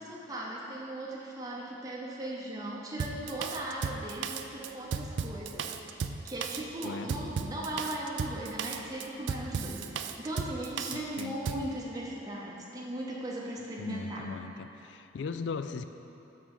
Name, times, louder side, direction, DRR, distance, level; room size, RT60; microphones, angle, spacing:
voice 1, 0.0-5.7 6.0-14.3, right 1 dB, 20° right, -4 dB, 0.7 m, -38 dB
Drum kit, 3.0-11.7, right 6 dB, 70° right, 0.4 m, -35 dB
voice 2, 10.9-11.4 13.8-15.8, left 5 dB, 70° left, 10 dB, 0.3 m, -38 dB
6.2 x 5.3 x 6.4 m, 2.9 s
head